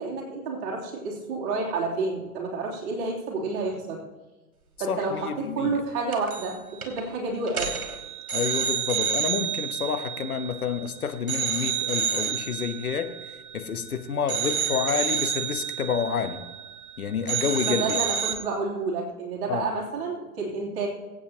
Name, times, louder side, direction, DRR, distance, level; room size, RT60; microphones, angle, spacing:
voice 1, 0.0-4.0 4.8-5.3 5.5-7.7 17.6-20.9, right 3 dB, 40° right, -3 dB, 3.4 m, -30 dB
voice 2, 4.9-5.8 8.3-16.4 17.0-17.8 19.5-19.7, left 7 dB, 70° left, 7 dB, 1.3 m, -29 dB
sound 1, 6.1-6.5 6.8-7.0 7.5-10.8 11.3-13.9 14.3-17.0 17.3-18.3, right 8 dB, 70° right, 2.6 m, -29 dB
23.5 x 8.6 x 3.0 m, 1.2 s
figure-of-eight pair, 105°, 45 cm